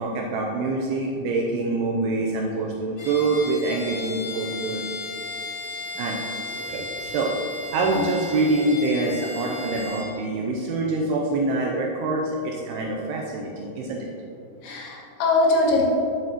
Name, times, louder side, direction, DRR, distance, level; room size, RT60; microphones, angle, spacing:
voice 1, 0.0-4.9 6.0-6.2 6.6-7.3 7.7-14.1, right 2 dB, 85° right, -1 dB, 2.3 m, -25 dB
Bowed string instrument, 3.0-10.1, left 2 dB, 55° left, 1.6 m, -35 dB
voice 2, 14.6-15.9, left 2 dB, 85° left, -3 dB, 3.7 m, -22 dB
9.0 x 8.7 x 3.0 m, 2.7 s
omnidirectional pair, 5.2 m